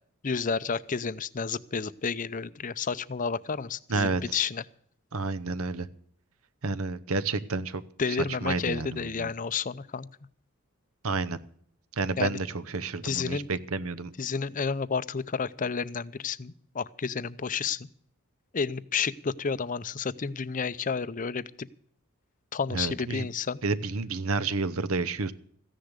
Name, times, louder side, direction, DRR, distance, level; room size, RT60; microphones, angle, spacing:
voice 1, 0.2-4.6 8.0-10.1 12.2-12.4 13.0-13.5 14.2-17.9 18.5-21.7 22.5-23.6, left 5 dB, 35° left, 16 dB, 0.6 m, -31 dB
voice 2, 3.9-4.4 5.1-5.9 6.6-7.8 8.4-9.3 11.0-11.4 12.0-14.1 22.7-23.3 23.6-25.3, right 3 dB, 70° right, 15 dB, 0.9 m, -30 dB
15.0 x 10.5 x 6.4 m, 0.62 s
head